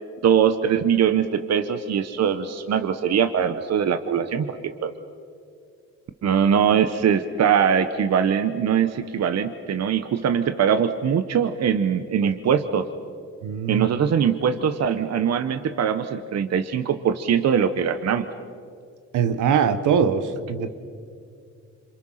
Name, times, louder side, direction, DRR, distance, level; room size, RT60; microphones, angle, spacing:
voice 1, 0.2-4.9 6.2-12.9 13.7-18.3, right 8 dB, 60° right, 10 dB, 1.2 m, -22 dB
voice 2, 13.4-13.9 19.1-20.7, right 7 dB, 80° right, 10 dB, 1.6 m, -22 dB
27.0 x 27.0 x 5.8 m, 2.3 s
cardioid pair, 90°, 30 cm